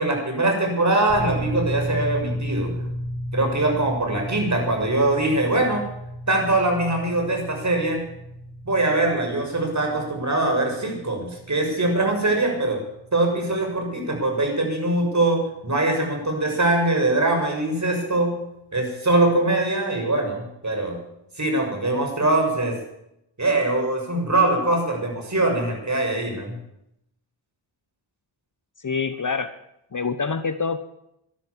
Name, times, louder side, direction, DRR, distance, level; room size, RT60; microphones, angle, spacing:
voice 1, 0.0-2.7 3.3-5.8 6.3-8.0 8.6-12.8 13.1-18.3 18.7-21.0 21.4-22.7 23.4-26.6, right 2 dB, 35° right, 2 dB, 6.6 m, -22 dB
sound 1, 1.1-17.8, equal, 25° left, 7.1 m, -35 dB
voice 2, 28.8-29.5 29.9-30.8, left 5 dB, 40° left, 12 dB, 1.1 m, -26 dB
12.0 x 12.0 x 8.5 m, 0.80 s
cardioid pair, 45°, 49 cm